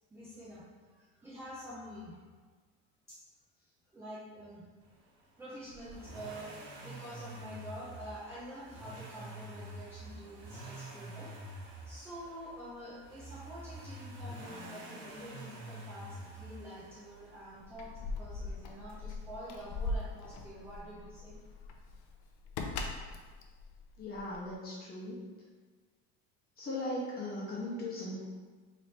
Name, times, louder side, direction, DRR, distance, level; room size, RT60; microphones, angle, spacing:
voice 1, 0.1-0.6 1.1-2.2 3.1-3.2 3.9-4.7 5.4-11.6 11.8-21.4, equal, 10° right, -9 dB, 0.5 m, -47 dB
Accelerating revving vroom, 5.7-17.6 18.9-19.0, right 1 dB, 50° right, 1.1 m, -47 dB
Keys jangling, 17.6-24.5, left 2 dB, 65° left, 0.6 m, -40 dB
voice 2, 24.0-25.2 26.6-28.2, left 1 dB, 30° left, -7 dB, 1.3 m, -38 dB
3.3 x 3.0 x 4.0 m, 1.4 s
cardioid pair, 150°, 31 cm